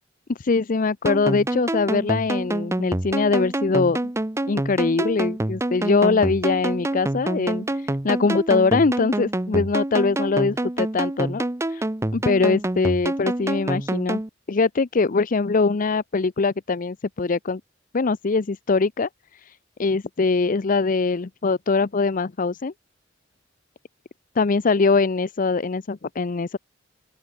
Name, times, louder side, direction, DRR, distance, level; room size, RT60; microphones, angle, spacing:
voice 1, 0.3-4.0 4.5-11.8 12.1-14.2 14.5-17.6 17.9-22.7 24.4-26.6, left 4 dB, 45° left, 0.6 m, -22 dB
sound 1, 1.1-14.3, right 1 dB, 15° right, 0.7 m, -27 dB
open air
head